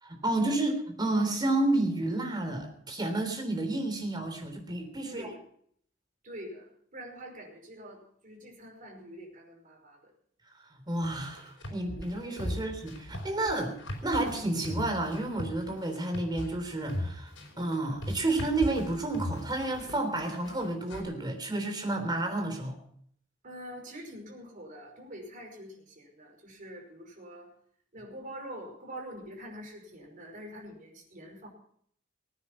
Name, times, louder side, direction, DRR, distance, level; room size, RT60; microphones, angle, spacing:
voice 1, 0.0-5.3 10.7-13.8 14.0-22.8, right 2 dB, 20° right, 4 dB, 3.6 m, -31 dB
voice 2, 5.0-5.4 6.2-10.0 12.4-12.7 23.4-27.5 27.9-31.5, equal, 45° right, 1 dB, 5.2 m, -45 dB
sound 1, 11.0-21.0, left 1 dB, 75° left, 4.7 m, -38 dB
20.0 x 9.7 x 5.9 m, 0.63 s
head